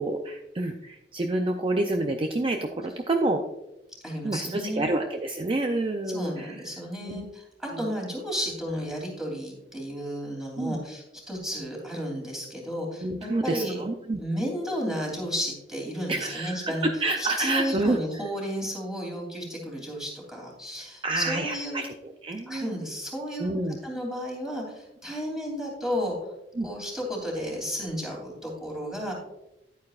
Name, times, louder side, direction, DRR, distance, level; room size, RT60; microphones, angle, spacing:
voice 1, 0.0-3.4 4.2-6.6 7.1-7.2 7.7-7.9 10.6-10.8 13.0-14.2 16.1-18.0 21.0-21.9 22.2-22.7 23.4-23.8 26.6-26.7, right 2 dB, 30° right, 4 dB, 0.5 m, -28 dB
voice 2, 4.0-4.9 6.1-13.8 14.2-16.9 17.2-21.8 22.5-26.2 26.6-29.1, equal, 5° right, -2 dB, 2.9 m, -33 dB
10.5 x 9.1 x 2.4 m, 0.90 s
head